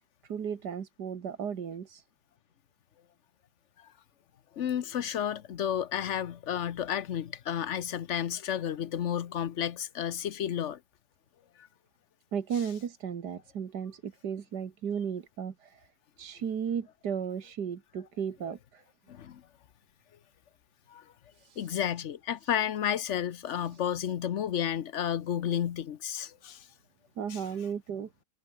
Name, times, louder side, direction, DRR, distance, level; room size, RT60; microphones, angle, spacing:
voice 1, 0.2-2.0 12.3-15.9 16.2-18.8 21.4-21.8 23.7-23.8 27.2-28.1, right 7 dB, 85° right, 2.2 m, -35 dB
voice 2, 4.6-10.8 19.1-19.4 20.9-21.0 21.6-26.6 27.3-27.4, left 9 dB, 55° left, 1.0 m, -32 dB
omnidirectional pair, 1.7 m